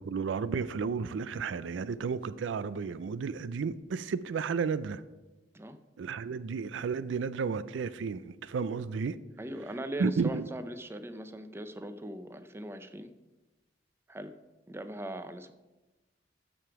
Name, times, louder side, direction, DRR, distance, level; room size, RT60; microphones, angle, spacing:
voice 1, 0.0-5.0 6.0-9.2 10.0-10.4, right 5 dB, 85° right, 16 dB, 0.4 m, -32 dB
voice 2, 9.4-13.1 14.1-14.3 14.7-15.5, right 1 dB, 15° right, 10 dB, 0.5 m, -40 dB
13.5 x 5.1 x 4.7 m, 1.1 s
head